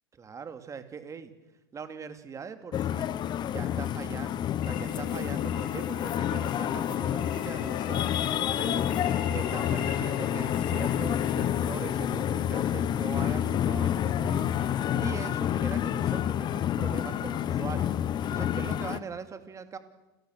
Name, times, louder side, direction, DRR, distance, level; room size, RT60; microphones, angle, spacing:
voice 1, 0.1-1.3 1.7-3.1 3.5-8.2 8.5-9.0 9.3-14.6 15.0-17.9 18.3-19.8, right 6 dB, 25° right, 9 dB, 2.6 m, -41 dB
sound 1, 2.7-19.0, left 10 dB, 35° left, 1.1 m, -29 dB
sound 2, 4.6-11.5, left 8 dB, 50° left, 5.0 m, -41 dB
sound 3, 9.3-9.4 9.8-10.8 11.2-12.3 12.7-15.1, right 6 dB, 80° right, 4.0 m, -45 dB
29.5 x 19.0 x 6.5 m, 1.0 s
hypercardioid pair, 90°, 13 cm